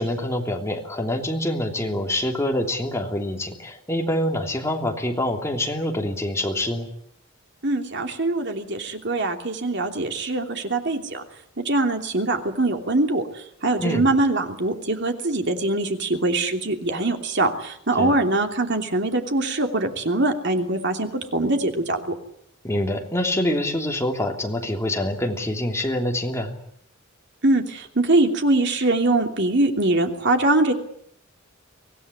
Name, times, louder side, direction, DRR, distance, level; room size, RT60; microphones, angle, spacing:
voice 1, 0.0-6.9 13.8-14.0 18.0-18.1 22.6-26.6, left 1 dB, 15° left, 2 dB, 3.1 m, -25 dB
voice 2, 7.6-11.2 11.6-22.1 27.4-30.7, right 2 dB, 55° right, 4 dB, 3.0 m, -23 dB
24.5 x 17.5 x 9.8 m, 0.72 s
head